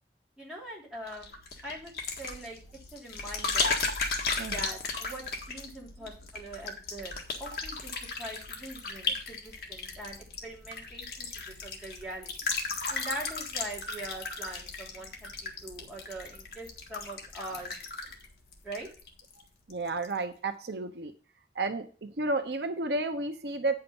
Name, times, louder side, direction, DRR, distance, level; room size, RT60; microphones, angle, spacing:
voice 1, 0.4-1.4 1.6-1.9 2.2-2.6 2.9-3.7 4.5-7.1 7.4-11.3 11.6-12.5 12.9-17.7 18.6-18.9, right 1 dB, 5° right, -5 dB, 3.1 m, -42 dB
sound 1, 1.1-19.4 19.7-20.1, left 4 dB, 60° left, 1.6 m, -36 dB
voice 2, 19.7-21.1 21.5-23.7, right 2 dB, 75° right, 7 dB, 0.9 m, -32 dB
8.9 x 5.7 x 5.4 m, 0.38 s
head